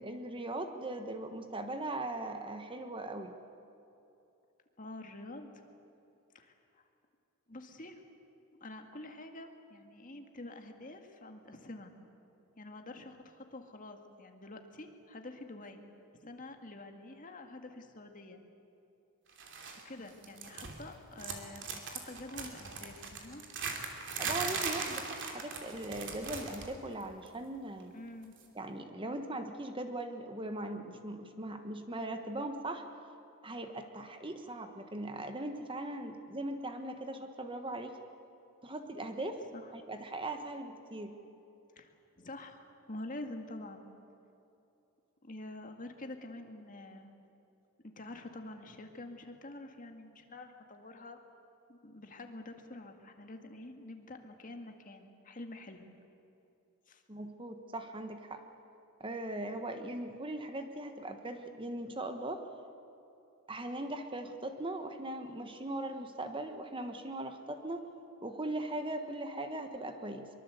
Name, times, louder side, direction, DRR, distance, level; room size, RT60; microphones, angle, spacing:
voice 1, 0.0-3.3 24.2-27.9 28.5-32.8 33.4-38.0 38.6-39.4 39.7-41.2 57.1-58.4 59.0-62.4 63.5-67.8 68.2-70.3, right 1 dB, 25° right, 6 dB, 1.3 m, -39 dB
voice 2, 4.8-5.6 6.3-6.8 7.5-8.0 8.6-11.9 12.6-15.8 16.2-18.4 19.8-23.4 27.9-28.3 39.5-39.7 41.8-43.8 45.2-47.1 48.0-51.2 51.7-55.9 56.9-57.0, left 2 dB, 35° left, 5 dB, 2.0 m, -47 dB
sound 1, 19.4-19.8 20.1-20.9 21.2-26.7 27.0-27.3 28.4-28.5, right 5 dB, 55° right, 3.0 m, -39 dB
23.5 x 23.5 x 8.2 m, 2.8 s
head